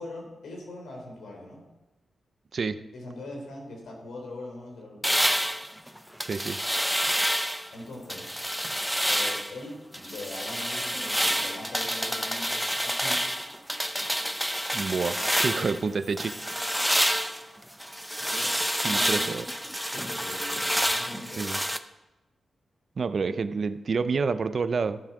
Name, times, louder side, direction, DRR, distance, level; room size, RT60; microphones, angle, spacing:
voice 1, 0.0-1.6 2.9-5.3 7.7-8.4 9.1-13.2 15.1-15.8 18.1-18.6 18.8-19.4 19.9-21.5, left 2 dB, 85° left, 0 dB, 3.5 m, -41 dB
sound 1, 5.0-7.7 8.1-9.6 9.9-15.8 16.2-21.8, equal, ahead, 0.7 m, -28 dB
voice 2, 6.2-6.6 14.7-15.1 15.4-16.3 18.8-19.5 21.4-21.6 23.0-25.0, right 4 dB, 60° right, 13 dB, 0.5 m, -28 dB
13.5 x 7.1 x 4.8 m, 1.1 s
cardioid pair, 50°, 0 cm